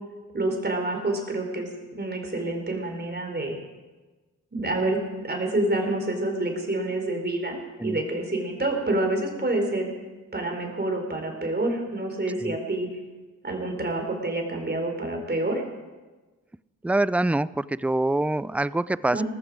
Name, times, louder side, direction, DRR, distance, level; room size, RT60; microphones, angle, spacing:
voice 1, 0.3-3.6 4.5-9.9 10.3-12.9 13.4-15.6 19.1-19.2, right 2 dB, 35° right, 3 dB, 4.3 m, -28 dB
voice 2, 16.8-19.2, right 2 dB, 5° right, 18 dB, 0.4 m, -25 dB
18.5 x 14.5 x 5.0 m, 1.2 s
cardioid pair, 55°, 31 cm